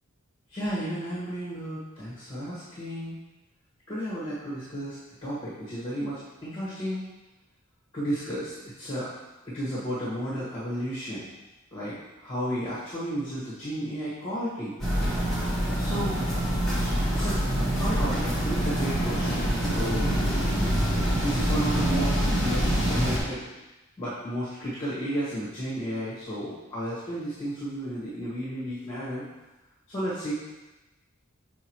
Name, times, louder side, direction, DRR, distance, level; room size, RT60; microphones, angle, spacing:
voice 1, 0.5-3.2 3.9-7.0 7.9-9.1 9.4-11.3 11.7-14.7 15.8-16.2 17.1-17.4 17.7-19.4 19.7-20.3 21.2-23.4 24.0-29.2 29.9-30.3, equal, 25° left, -10 dB, 1.6 m, -33 dB
sound 1, 14.8-23.2, equal, ahead, 1.5 m, -25 dB
7.2 x 4.2 x 3.1 m, 1.1 s
head